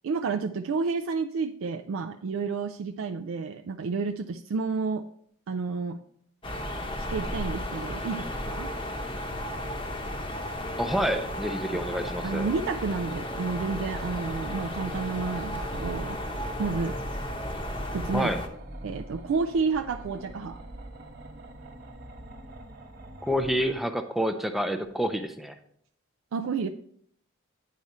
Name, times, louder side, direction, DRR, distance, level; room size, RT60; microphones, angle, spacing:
voice 1, 0.0-5.0 5.5-6.0 7.1-8.7 12.2-17.0 17.9-18.3 18.8-20.6 26.3-26.7, right 4 dB, 70° right, 5 dB, 0.4 m, -30 dB
sound 1, 6.4-18.5, left 1 dB, 25° left, 0.8 m, -34 dB
voice 2, 10.8-12.5 18.1-18.4 23.2-25.5, equal, ahead, 7 dB, 0.5 m, -28 dB
sound 2, 14.2-23.7, right 1 dB, 45° right, 1.0 m, -44 dB
9.3 x 4.8 x 4.2 m, 0.66 s
head